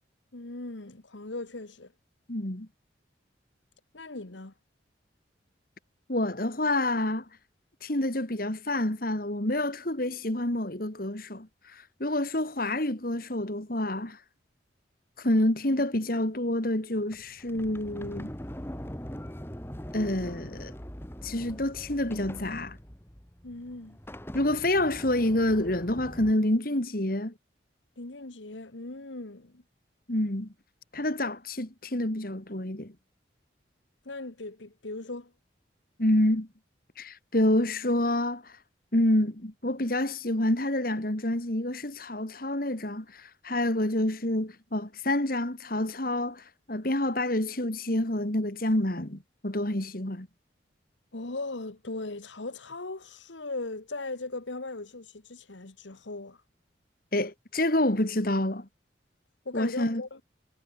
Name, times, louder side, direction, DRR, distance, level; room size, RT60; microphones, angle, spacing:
voice 1, 0.3-1.9 3.9-4.5 23.4-24.0 28.0-29.6 34.1-35.3 51.1-56.4 59.5-60.2, left 2 dB, 80° left, 1.7 m, -38 dB
voice 2, 2.3-2.7 6.1-7.2 7.8-14.2 15.2-18.3 19.9-20.7 21.2-22.8 24.3-27.3 30.1-30.5 30.9-32.9 36.0-36.5 37.0-38.5 38.9-50.3 57.1-58.7 59.5-60.0, left 1 dB, 50° left, 2.4 m, -28 dB
Sliding door, 17.1-26.3, equal, 10° left, 1.9 m, -42 dB
head